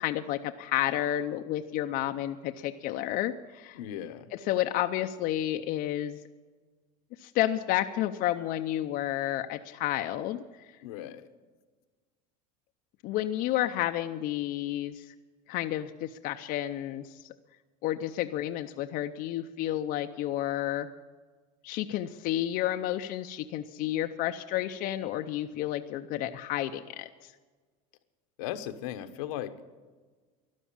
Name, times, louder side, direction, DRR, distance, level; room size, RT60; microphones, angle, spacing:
voice 1, 0.0-3.8 4.3-6.2 7.2-10.4 13.0-15.1 15.5-17.3 17.8-20.9 21.6-27.3, left 13 dB, 55° left, 6 dB, 0.7 m, -31 dB
voice 2, 3.7-4.3 10.8-11.3 25.5-25.7 28.4-29.8, left 11 dB, 85° left, 9 dB, 1.1 m, -38 dB
13.0 x 11.5 x 8.6 m, 1.4 s
supercardioid pair, 115°, 18 cm